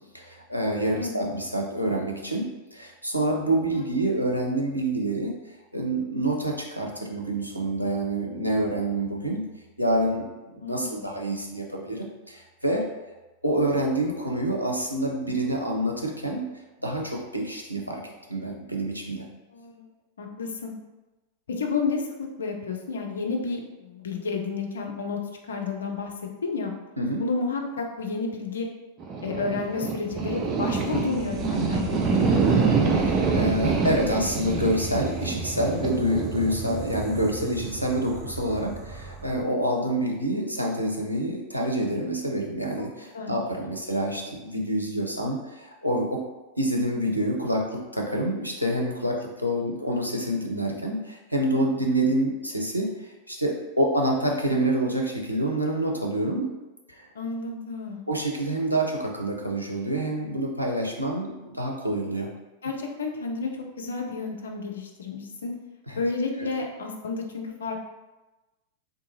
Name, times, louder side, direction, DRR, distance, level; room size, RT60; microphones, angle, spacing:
voice 1, 0.1-5.4 5.7-9.4 9.8-10.3 10.5-12.8 13.4-16.5 16.8-19.3 27.0-27.2 33.0-46.2 46.6-56.5 56.9-57.1 58.1-62.3 65.9-66.0 66.4-66.5, right 1 dB, 90° right, 1 dB, 0.5 m, -27 dB
voice 2, 0.9-1.3 3.7-3.9 10.6-11.1 19.5-19.9 20.2-20.7 21.6-25.2 25.5-26.1 26.4-26.7 27.2-28.7 29.2-32.4 43.1-43.4 57.1-58.0 62.6-63.5 63.8-65.5 66.0-67.9, left 4 dB, 70° left, 2 dB, 0.5 m, -31 dB
sound 1, 29.0-39.4, right 4 dB, 30° right, 0.4 m, -26 dB
3.6 x 2.6 x 2.7 m, 1.1 s
figure-of-eight pair, 90°, 0 cm